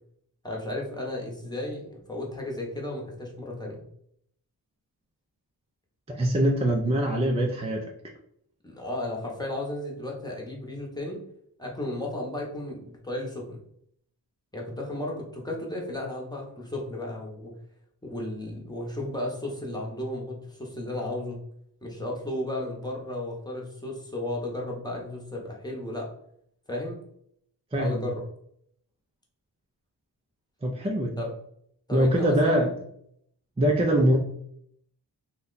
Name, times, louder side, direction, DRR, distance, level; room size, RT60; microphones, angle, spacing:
voice 1, 0.4-3.8 8.6-11.2 11.6-13.6 14.5-17.5 18.0-21.4 21.8-26.1 26.7-27.0 27.8-28.2 31.2-31.3 31.9-32.6, left 1 dB, 10° left, -2 dB, 0.9 m, -34 dB
voice 2, 6.1-7.8 27.7-28.1 30.6-31.2 31.9-32.7 33.6-34.2, right 1 dB, 15° right, 0 dB, 0.4 m, -23 dB
2.8 x 2.2 x 3.8 m, 0.69 s
wide cardioid pair, 90°, 42 cm